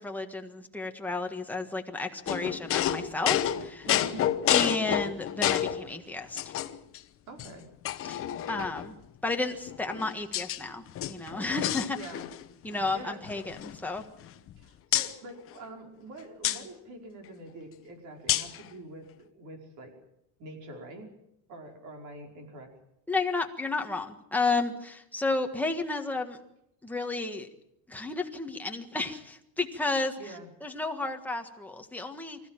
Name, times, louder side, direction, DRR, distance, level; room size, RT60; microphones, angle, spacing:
voice 1, 0.0-3.9 4.5-6.5 8.0-9.0 9.2-12.0 12.6-14.0 23.1-26.4 26.8-27.5 27.9-30.2 30.6-32.4, left 3 dB, 5° left, 3 dB, 1.5 m, -32 dB
sound 1, 2.3-5.8 6.4-7.0 7.4-7.5 7.8-8.9 9.7-10.6 10.9-12.5 12.7-12.9 13.2-14.5 14.9-15.1 16.4-16.6 18.3-18.6, left 12 dB, 30° left, 1.0 m, -29 dB
voice 2, 3.9-4.3 7.3-7.7 11.9-12.3 12.6-13.2 14.6-20.0 20.4-21.1 21.5-22.7 30.2-30.5, right 2 dB, 40° right, 4 dB, 5.0 m, -45 dB
25.5 x 15.0 x 9.0 m, 0.79 s
cardioid pair, 180°, 43 cm